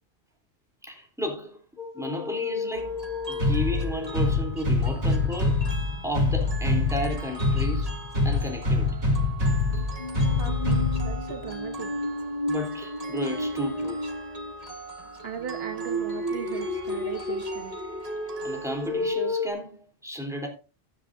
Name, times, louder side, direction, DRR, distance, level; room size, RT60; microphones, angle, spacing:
voice 1, 0.8-1.6 1.9-3.0 3.3-5.6 6.0-7.9 8.2-8.9 12.5-14.0 18.4-20.5, equal, 5° right, 3.3 m, -33 dB
sound 1, 1.8-4.5 9.7-14.7 15.3-19.5, left 2 dB, 40° left, 1.7 m, -32 dB
sound 2, 2.7-19.1, right 2 dB, 35° right, 1.6 m, -42 dB
sound 3, 3.4-11.4, left 2 dB, 75° right, 4.1 m, -25 dB
voice 2, 10.3-11.9 15.2-17.8, right 7 dB, 60° right, 1.1 m, -38 dB
15.0 x 10.0 x 2.6 m
omnidirectional pair, 1.2 m